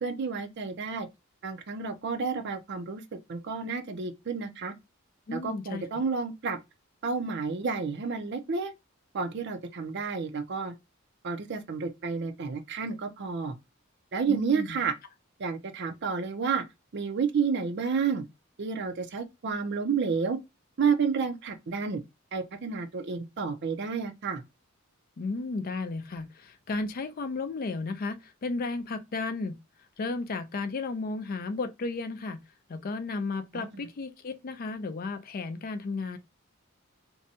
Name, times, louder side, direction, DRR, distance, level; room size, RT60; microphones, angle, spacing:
voice 1, 0.0-1.1 1.4-3.0 3.3-4.7 5.3-6.6 7.0-8.7 9.1-10.8 11.2-13.5 14.1-14.9 15.4-16.6 16.9-18.2 18.6-20.4 20.8-22.0 22.3-24.4 33.5-33.8, right 5 dB, 55° right, 0.5 m, -30 dB
voice 2, 5.3-5.8 14.3-14.8 25.2-29.6 30.0-32.4 32.7-36.2, left 3 dB, 45° left, 0.4 m, -34 dB
2.6 x 2.2 x 2.6 m
head